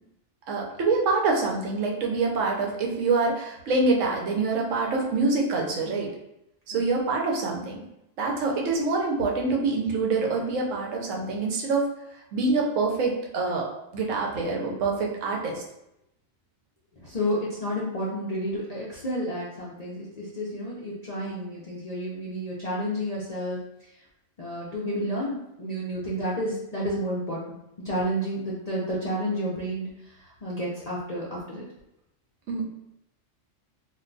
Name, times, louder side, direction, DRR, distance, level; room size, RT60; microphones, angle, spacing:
voice 1, 0.5-6.1 6.7-7.8 8.2-11.9 12.3-15.6 32.5-32.7, right 3 dB, 75° right, 0 dB, 1.0 m, -25 dB
voice 2, 17.0-23.6 24.4-27.6 27.8-31.6, equal, 50° left, -6 dB, 0.5 m, -31 dB
2.6 x 2.2 x 3.8 m, 0.83 s
omnidirectional pair, 1.4 m